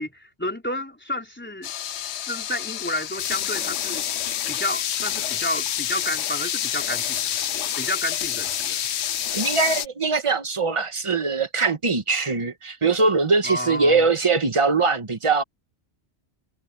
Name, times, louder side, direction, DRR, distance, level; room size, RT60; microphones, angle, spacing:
voice 1, 0.0-1.7 2.3-4.0 4.5-7.4 7.8-8.9 13.4-14.0, left 1 dB, 10° left, 4.2 m, -31 dB
sound 1, 1.6-9.9, left 10 dB, 75° left, 0.9 m, -28 dB
voice 2, 9.3-15.4, right 4 dB, 30° right, 1.3 m, -22 dB
omnidirectional pair, 1.2 m